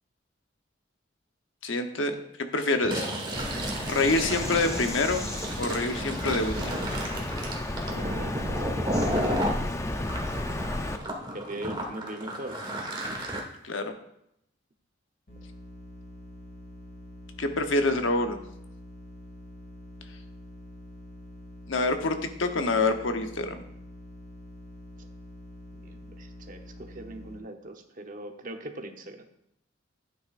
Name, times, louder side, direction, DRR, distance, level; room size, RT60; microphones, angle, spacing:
voice 1, 1.6-3.1 3.9-5.3 5.6-6.9 7.9-8.0 13.6-13.9 17.4-18.4 21.7-23.5, left 2 dB, 90° left, 6 dB, 1.0 m, -26 dB
Fill (with liquid), 2.8-9.6 10.1-13.4, equal, 25° right, 1.5 m, -33 dB
Bird vocalization bird call bird song, 3.3-11.0, left 1 dB, 15° left, 0.5 m, -33 dB
voice 2, 7.9-8.9 9.9-10.1 11.3-13.1 25.0-25.1 25.8-29.3, right 1 dB, 45° right, 5 dB, 0.9 m, -41 dB
sound 1, 15.3-27.4, left 1 dB, 50° left, 2.3 m, -46 dB
11.5 x 9.2 x 2.5 m, 0.78 s
head